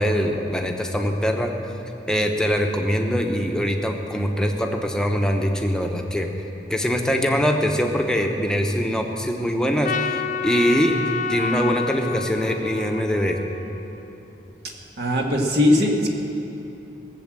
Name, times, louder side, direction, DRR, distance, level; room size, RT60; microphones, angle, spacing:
voice 1, 0.0-1.6 2.1-6.3 6.7-11.0 11.3-13.4, equal, 5° left, 2 dB, 0.9 m, -23 dB
Trumpet, 9.8-14.2, left 5 dB, 45° left, 0.4 m, -29 dB
voice 2, 15.0-16.1, left 1 dB, 60° right, 1 dB, 1.6 m, -19 dB
17.5 x 7.6 x 7.5 m, 3.0 s
head